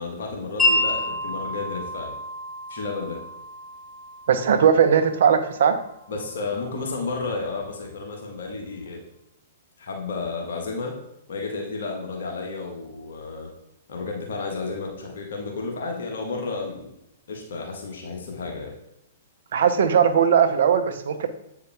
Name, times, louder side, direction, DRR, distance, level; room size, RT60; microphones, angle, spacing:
voice 1, 0.0-2.1 2.7-3.2 6.1-9.0 9.8-10.9 11.3-13.5 13.9-16.9 17.3-18.7, left 3 dB, 70° left, 1 dB, 1.3 m, -32 dB
Wind chime, 0.6-6.7, left 2 dB, 5° left, 2.1 m, -29 dB
voice 2, 4.3-5.8 19.5-21.3, right 7 dB, 65° right, 9 dB, 0.7 m, -19 dB
8.1 x 4.7 x 3.4 m, 0.83 s
hypercardioid pair, 115°, 0 cm